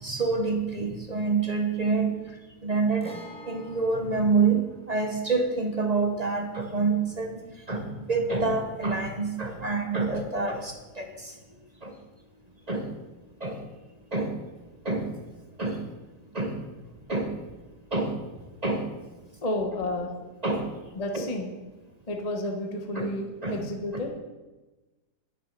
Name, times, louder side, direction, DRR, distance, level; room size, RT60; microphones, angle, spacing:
voice 1, 0.0-2.2 2.6-3.1 3.5-4.6 4.9-7.4 7.7-11.3 11.8-11.9 12.7-12.9 13.4-13.6 14.1-14.3 14.8-15.1 15.6-15.8 16.3-16.6 17.1-17.3 17.9-18.2 18.6-18.9 20.4-20.7 21.1-21.3 22.9-23.1 23.4-23.6, right 4 dB, 30° right, 5 dB, 0.8 m, -27 dB
Guitar, 3.0-10.6 10.9-11.0 13.0-13.1, right 1 dB, 5° left, 1.1 m, -50 dB
voice 2, 19.4-20.1 20.9-21.5 22.1-24.1, left 1 dB, 25° left, 2 dB, 1.0 m, -31 dB
9.4 x 9.1 x 5.3 m, 1.2 s
omnidirectional pair, 1.8 m